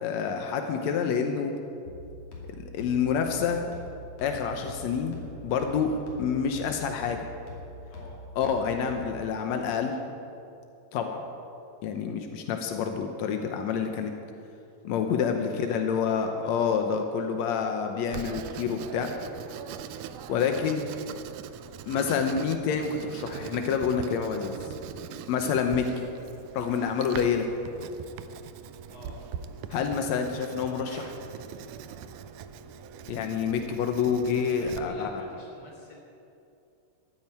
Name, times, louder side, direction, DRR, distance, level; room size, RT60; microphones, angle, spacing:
voice 1, 0.0-1.5 2.6-3.7 4.2-5.2 5.4-7.2 8.3-10.0 10.9-11.2 11.8-14.1 14.8-19.1 20.3-20.9 21.9-24.5 25.3-25.9 26.5-27.5 29.7-31.1 33.1-35.1, left 6 dB, 85° left, 5 dB, 1.5 m, -28 dB
sound 1, 1.8-9.4, left 2 dB, 45° left, 3.6 m, -44 dB
voice 2, 15.5-16.6 19.9-20.2 28.9-29.2 34.6-35.9, left 1 dB, 30° left, -2 dB, 3.6 m, -47 dB
Writing, 18.1-34.8, right 8 dB, 85° right, 1.8 m, -41 dB
13.5 x 9.3 x 9.1 m, 2.6 s
omnidirectional pair, 4.4 m